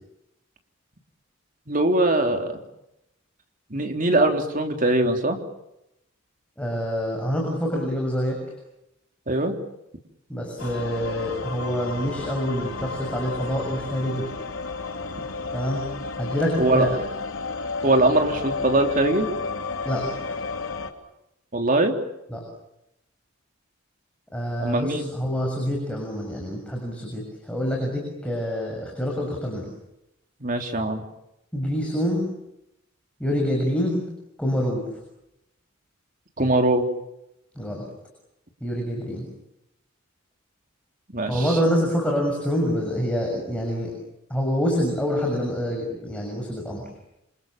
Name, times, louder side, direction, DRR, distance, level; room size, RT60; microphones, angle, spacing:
voice 1, 1.7-2.6 3.7-5.4 9.3-9.6 16.6-16.9 17.8-19.3 21.5-22.0 24.6-25.1 30.4-31.0 36.4-36.9 41.1-41.6, right 2 dB, 40° right, 4 dB, 3.6 m, -21 dB
voice 2, 6.6-8.4 10.3-14.3 15.5-15.8 16.2-16.9 19.8-20.3 22.3-22.4 24.3-29.7 31.5-32.3 33.2-34.0 34.4-35.0 37.5-37.8 38.6-39.2 41.3-43.9 44.3-46.9, equal, 5° left, 0 dB, 6.8 m, -26 dB
sound 1, 10.6-20.9, left 4 dB, 80° left, 3.4 m, -32 dB
28.0 x 27.5 x 7.4 m, 0.85 s
head